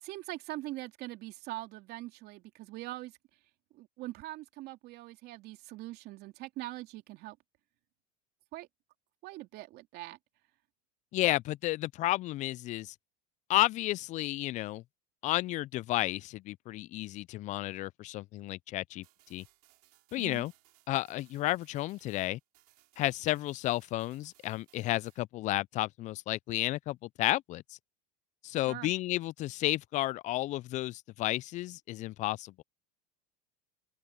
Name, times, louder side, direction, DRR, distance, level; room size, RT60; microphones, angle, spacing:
voice 1, 0.0-3.2 3.7-7.4 8.5-8.7 9.2-10.2 20.2-20.4 28.7-28.9, right 17 dB, 55° right, 3.1 m, -42 dB
voice 2, 11.1-12.9 13.5-14.8 15.2-19.0 19.3-19.4 20.1-20.5 20.9-22.4 23.0-27.6 28.4-32.6, left 17 dB, 40° left, 0.4 m, -32 dB
sound 1, 19.0-25.2, right 17 dB, 80° right, 6.2 m, -66 dB
open air
hypercardioid pair, 100°, 20 cm